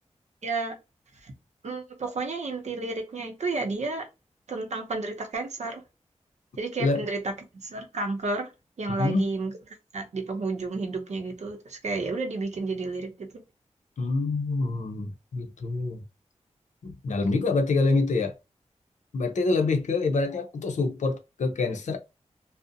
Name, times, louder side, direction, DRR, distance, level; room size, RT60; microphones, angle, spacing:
voice 1, 0.4-0.8 1.2-1.3 1.6-4.1 4.5-5.8 6.6-8.5 8.8-9.5 9.9-13.3, right 3 dB, 70° right, 0.7 m, -31 dB
voice 2, 8.9-9.3 14.0-16.0 16.8-18.3 19.1-22.0, left 3 dB, 80° left, 0.5 m, -26 dB
2.5 x 2.0 x 2.5 m
cardioid pair, 60°, 12 cm